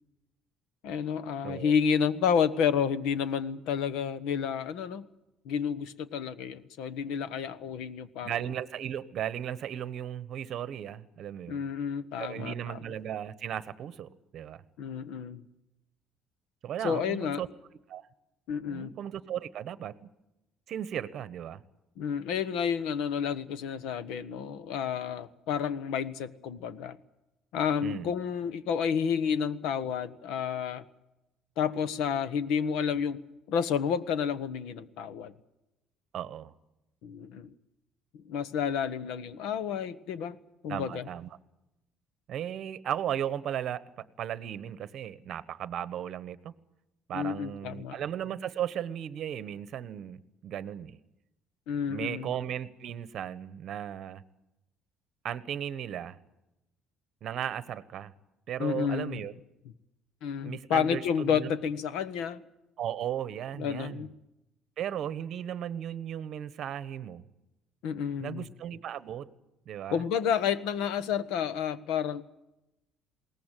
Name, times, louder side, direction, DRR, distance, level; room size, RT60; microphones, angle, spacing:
voice 1, 0.8-5.1 5.4-8.4 11.5-12.8 14.8-15.4 16.8-17.4 18.5-18.9 22.0-27.0 27.5-30.8 31.6-33.2 33.5-35.3 37.0-37.5 38.1-40.4 40.6-41.1 47.1-48.0 51.7-52.3 58.6-59.2 60.2-62.4 63.6-64.1 67.8-68.5 69.9-72.2, left 7 dB, 75° left, 15 dB, 1.3 m, -30 dB
voice 2, 8.2-11.6 12.2-14.6 16.6-17.5 17.9-18.1 18.7-20.1 20.7-21.6 27.8-28.1 36.1-36.5 40.7-41.3 42.3-43.8 44.2-46.5 47.1-51.0 51.9-54.2 55.2-56.2 57.2-58.1 58.5-59.3 60.4-61.5 62.8-64.1 64.8-67.2 68.2-69.3 69.7-70.0, right 10 dB, 45° right, 15 dB, 1.1 m, -36 dB
21.5 x 18.5 x 9.1 m, 0.94 s
cardioid pair, 170°, 0 cm